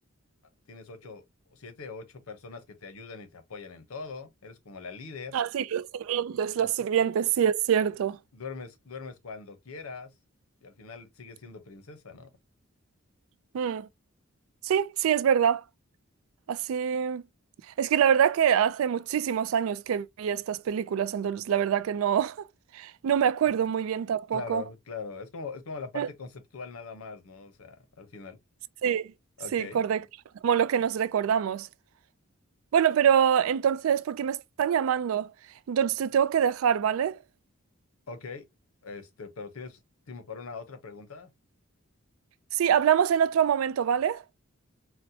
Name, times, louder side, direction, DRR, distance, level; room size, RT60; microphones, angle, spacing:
voice 1, 0.7-1.2 1.5-5.3 6.6-6.7 8.3-10.1 10.6-12.3 24.3-28.4 29.4-29.8 38.1-38.4 38.8-39.8 40.1-41.3, left 4 dB, 85° left, 0.7 m, -41 dB
voice 2, 5.3-8.2 13.5-13.9 14.6-15.6 16.5-17.2 17.8-22.4 22.7-24.6 25.9-26.1 28.8-29.1 29.5-30.0 30.4-31.7 32.7-35.3 35.7-37.2 42.5-44.2, right 8 dB, 70° right, 0.3 m, -25 dB
4.0 x 2.1 x 2.6 m
head